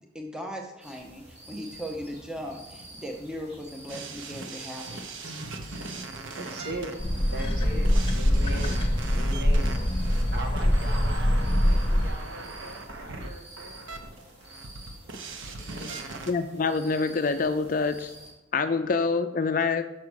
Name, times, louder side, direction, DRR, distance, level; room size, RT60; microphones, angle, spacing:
voice 1, 0.1-5.5, equal, 5° right, 1 dB, 0.7 m, -38 dB
sound 1, 0.8-18.3, right 1 dB, 30° right, 2.1 m, -49 dB
sound 2, 3.9-16.3, right 3 dB, 90° right, 0.9 m, -40 dB
voice 2, 6.4-6.9 7.3-9.8 10.3-13.8 15.4-16.1, right 2 dB, 55° right, 1 dB, 1.4 m, -40 dB
sound 3, 7.0-12.1, equal, 25° left, 0.9 m, -24 dB
voice 3, 16.3-18.1 18.5-19.8, left 4 dB, 45° left, 9 dB, 0.4 m, -26 dB
6.0 x 4.7 x 6.3 m, 1.0 s
head